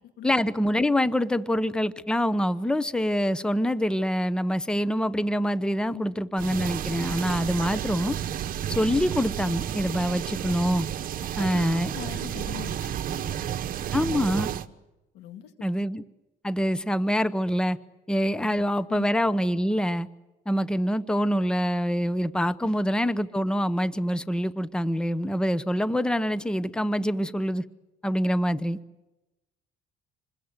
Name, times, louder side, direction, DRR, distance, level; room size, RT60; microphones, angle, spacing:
voice 1, 0.2-8.2 8.7-10.9 11.4-11.9 13.9-14.5 15.6-16.0 16.4-17.8 18.1-20.1 20.5-27.6 28.0-28.8, equal, 5° left, 15 dB, 0.8 m, -25 dB
sound 1, 6.4-14.7, right 10 dB, 55° right, 1.2 m, -31 dB
voice 2, 11.4-13.5 15.1-15.5 18.4-19.1 22.6-23.1, left 11 dB, 90° left, 8 dB, 2.3 m, -42 dB
27.5 x 21.5 x 7.9 m, 1.0 s
cardioid pair, 110°, 17 cm